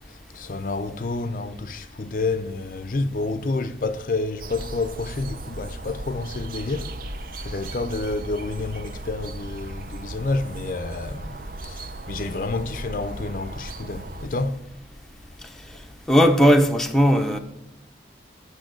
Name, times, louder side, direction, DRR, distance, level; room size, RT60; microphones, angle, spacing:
voice 1, 0.1-6.9 7.4-11.4 11.6-14.6, left 3 dB, 50° left, 0.5 m, -29 dB
sound 1, 4.4-14.3, right 1 dB, 50° right, 0.6 m, -37 dB
voice 2, 16.1-17.4, equal, ahead, 0.7 m, -17 dB
8.8 x 5.6 x 7.6 m
head